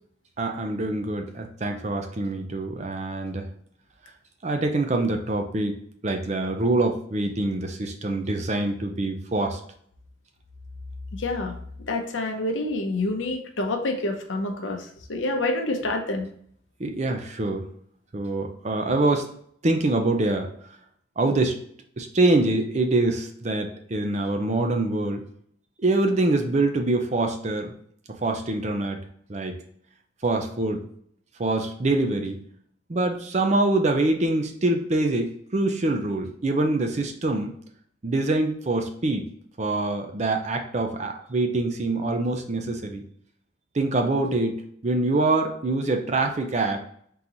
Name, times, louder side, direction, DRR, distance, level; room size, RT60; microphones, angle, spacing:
voice 1, 0.4-3.5 4.4-5.8 6.0-9.6 16.8-17.7 18.1-19.3 19.6-20.5 21.2-21.6 22.0-25.2 25.8-27.7 28.1-29.0 29.3-29.6 30.2-30.8 31.4-32.4 32.9-37.6 38.0-39.3 39.6-43.0 43.7-46.8, right 2 dB, 35° right, 5 dB, 0.5 m, -25 dB
voice 2, 11.1-11.5 11.9-16.3, left 2 dB, 75° left, 4 dB, 0.7 m, -27 dB
3.8 x 2.9 x 3.8 m, 0.64 s
head